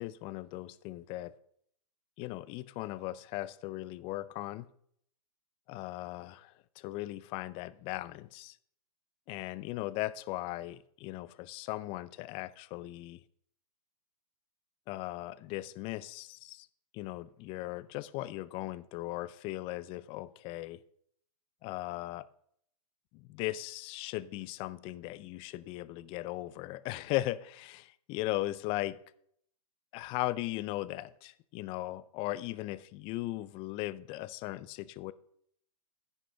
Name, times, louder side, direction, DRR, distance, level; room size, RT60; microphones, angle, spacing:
voice 1, 0.0-1.3 2.2-4.7 5.7-8.6 9.3-13.2 14.9-16.7 16.9-20.8 21.6-22.3 23.1-29.0 29.9-35.1, left 17 dB, 25° left, 0.4 m, -38 dB
9.8 x 9.8 x 3.4 m
hypercardioid pair, 130°, 20 cm